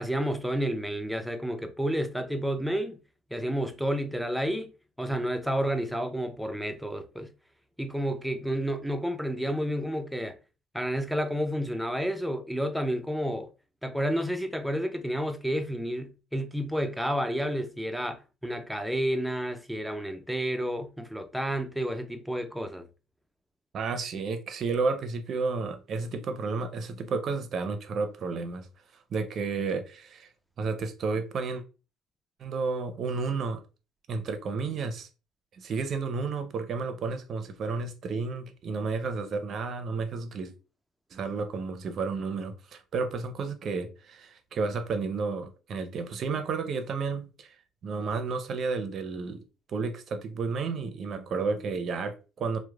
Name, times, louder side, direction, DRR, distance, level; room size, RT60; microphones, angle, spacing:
voice 1, 0.0-3.0 3.3-4.7 5.0-7.3 7.8-10.3 10.7-13.5 13.8-22.9, equal, ahead, 0.5 m, -30 dB
voice 2, 23.7-28.7 29.1-30.3 30.6-31.6 32.4-33.6 34.1-35.1 35.5-40.5 41.1-47.5 47.8-49.4 49.7-52.6, right 4 dB, 55° right, 0.5 m, -31 dB
2.9 x 2.1 x 2.3 m
supercardioid pair, 80°, 0 cm